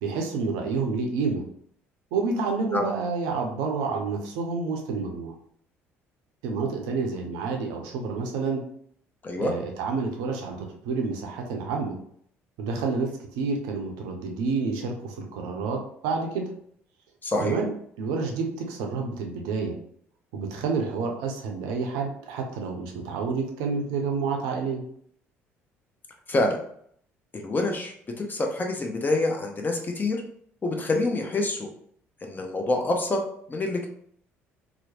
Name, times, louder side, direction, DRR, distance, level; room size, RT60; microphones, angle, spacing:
voice 1, 0.0-1.4 2.1-5.3 6.4-8.6 9.4-12.0 12.6-16.4 17.4-17.7 18.0-19.8 20.3-24.8, right 4 dB, 65° right, 2 dB, 0.5 m, -29 dB
voice 2, 17.2-17.6 26.3-26.6 27.3-30.2 30.6-31.7 32.2-33.2 33.5-33.9, left 2 dB, 25° left, 2 dB, 0.6 m, -26 dB
2.9 x 2.0 x 2.9 m, 0.64 s
figure-of-eight pair, 50°, 7 cm